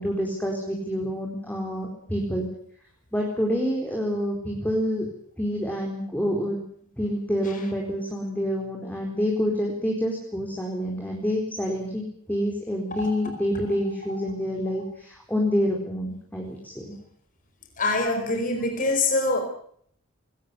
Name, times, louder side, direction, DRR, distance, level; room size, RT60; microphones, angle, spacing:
voice 1, 0.0-2.5 3.1-5.1 5.4-6.6 7.0-12.0 12.3-16.9, equal, 5° left, 4.5 m, -27 dB
voice 2, 17.8-19.4, left 2 dB, 40° left, 4.9 m, -25 dB
22.0 x 19.0 x 8.4 m
head